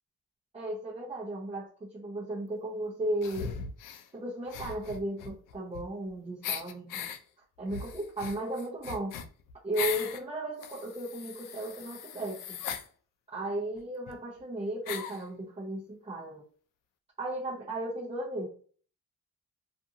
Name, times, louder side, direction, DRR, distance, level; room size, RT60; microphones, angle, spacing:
voice 1, 0.5-3.6 4.1-7.1 7.6-9.2 9.6-12.6 13.3-16.4 17.2-18.5, right 1 dB, 20° right, -7 dB, 0.7 m, -35 dB
sound 1, 3.2-4.1 4.5-6.1 6.4-7.2 7.7-10.2 10.6-12.9 13.8-13.9 14.1-14.2 14.9-15.2, left 7 dB, 85° left, 0.5 m, -39 dB
2.5 x 2.5 x 2.7 m, 0.43 s
cardioid pair, 145°, 32 cm